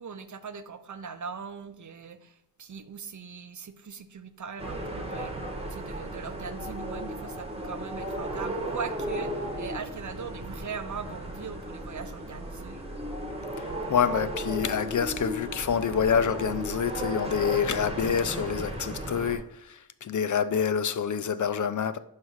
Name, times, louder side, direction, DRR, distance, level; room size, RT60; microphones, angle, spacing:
voice 1, 0.0-5.3 5.7-12.9, right 6 dB, 50° right, 0.7 m, -40 dB
sound 1, 4.6-19.4, right 1 dB, 15° right, 1.3 m, -35 dB
voice 2, 13.9-22.0, left 7 dB, 55° left, 0.5 m, -27 dB
5.8 x 3.2 x 5.6 m
wide cardioid pair, 75°, 37 cm